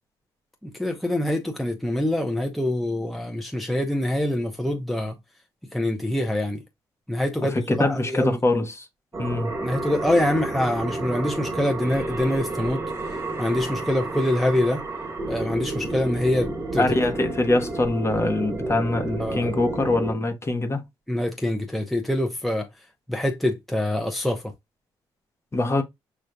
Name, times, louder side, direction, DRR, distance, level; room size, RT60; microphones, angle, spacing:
voice 1, 0.6-5.2 5.7-6.6 7.1-8.4 9.6-12.8 13.4-14.8 15.3-16.9 19.2-19.5 21.1-22.7 23.1-24.5, left 1 dB, ahead, 0.8 m, -25 dB
voice 2, 7.4-8.9 9.2-9.6 16.8-20.8 25.5-25.8, left 2 dB, 25° left, 1.0 m, -23 dB
sound 1, 9.1-20.1, right 2 dB, 25° right, 1.3 m, -31 dB
6.4 x 2.5 x 2.3 m
supercardioid pair, 70°, 10 cm